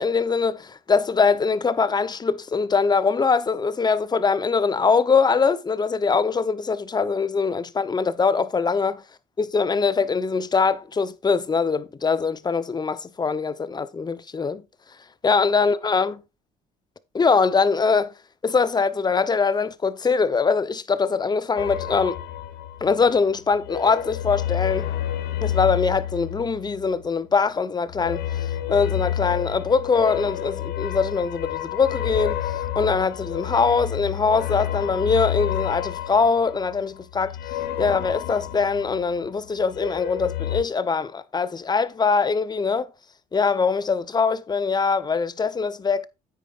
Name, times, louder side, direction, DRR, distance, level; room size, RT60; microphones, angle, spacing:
voice 1, 0.0-9.0 9.4-14.6 15.2-16.2 17.1-18.1 18.4-22.2 22.8-24.9 25.4-28.3 28.7-32.4 32.7-37.4 37.8-42.9 43.3-46.1, left 5 dB, 25° left, 0.9 m, -22 dB
sound 1, 21.6-23.2 23.5-27.1 27.9-39.3 39.6-40.6, left 11 dB, 75° left, 1.4 m, -29 dB
9.5 x 8.9 x 2.5 m
cardioid pair, 110°, 17 cm